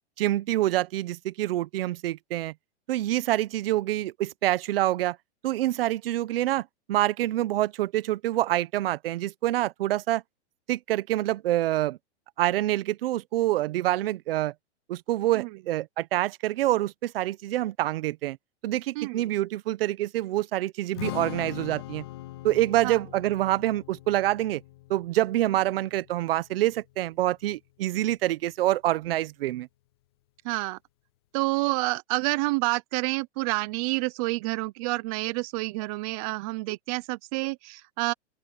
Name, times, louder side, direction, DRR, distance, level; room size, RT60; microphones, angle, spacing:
voice 1, 0.2-2.5 2.9-5.2 5.4-10.2 10.7-12.0 12.4-14.5 14.9-18.4 18.6-22.0 22.4-24.6 24.9-29.7, right 15 dB, 55° right, 1.0 m, -26 dB
Strum, 20.9-27.2, left 15 dB, 25° left, 0.3 m, -41 dB
voice 2, 30.4-30.8 31.3-38.1, right 24 dB, 30° right, 0.7 m, -28 dB
open air
hypercardioid pair, 150°, 35 cm